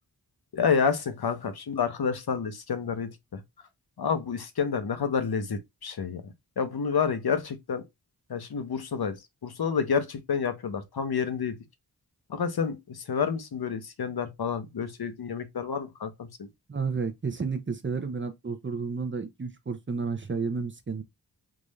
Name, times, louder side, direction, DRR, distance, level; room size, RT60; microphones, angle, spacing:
voice 1, 0.5-3.4 4.0-6.2 6.6-7.8 8.3-11.5 12.3-16.5, left 6 dB, 65° left, 0.8 m, -29 dB
voice 2, 16.7-21.0, right 5 dB, 30° right, 0.6 m, -31 dB
3.7 x 2.5 x 3.1 m
wide cardioid pair, 75°, 40 cm